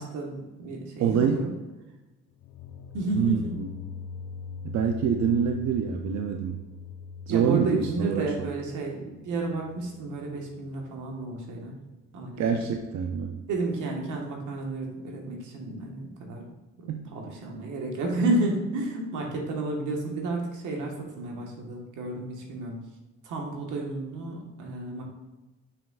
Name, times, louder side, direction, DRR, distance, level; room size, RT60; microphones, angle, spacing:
voice 1, 0.0-1.5 2.9-3.6 7.3-11.8 12.1-12.6 13.5-16.5 17.1-22.8 23.2-25.1, right 2 dB, 85° right, 1 dB, 1.4 m, -31 dB
voice 2, 1.0-1.5 3.2-3.7 4.6-6.6 7.3-8.5 12.4-13.4 16.9-17.0, right 7 dB, 65° right, 5 dB, 0.6 m, -26 dB
sound 1, 2.3-11.2, left 5 dB, 80° left, 0.7 m, -42 dB
6.7 x 6.1 x 2.4 m, 1.1 s
cardioid pair, 90°, 30 cm